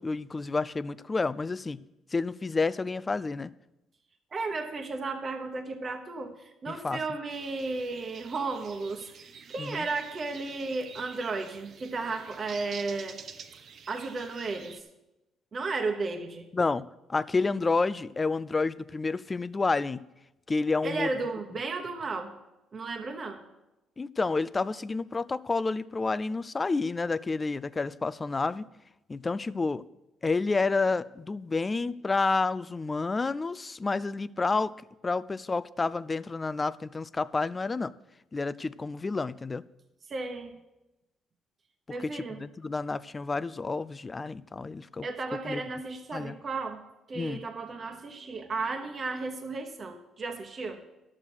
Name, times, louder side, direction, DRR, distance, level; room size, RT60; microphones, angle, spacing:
voice 1, 0.0-1.8 2.1-3.5 6.8-7.0 9.6-9.9 16.5-16.8 17.1-20.0 20.5-21.1 24.0-28.7 29.1-29.8 30.2-34.7 35.0-37.9 38.3-39.6 42.0-45.1 45.5-45.6 46.1-46.4 47.2-47.4, left 3 dB, 25° left, 0.4 m, -29 dB
voice 2, 4.3-13.2 13.9-14.8 15.5-16.5 20.8-22.4 22.7-23.4 40.1-40.6 41.9-42.4 45.0-46.8 47.1-50.8, right 3 dB, 40° right, 1.1 m, -34 dB
sound 1, 7.3-14.8, right 6 dB, 60° right, 0.7 m, -48 dB
11.0 x 7.3 x 6.2 m
cardioid pair, 85°, 0 cm